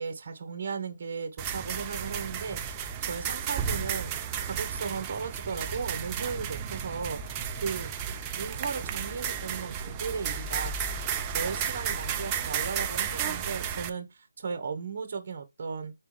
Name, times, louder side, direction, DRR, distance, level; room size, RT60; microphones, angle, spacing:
voice 1, 0.0-4.1 4.4-7.2 7.5-7.9 8.3-10.7 11.3-15.9, right 5 dB, 45° right, 1.0 m, -36 dB
sound 1, 1.4-13.9, right 7 dB, 20° right, 0.5 m, -33 dB
4.6 x 3.5 x 3.1 m
figure-of-eight pair, 160°, 0 cm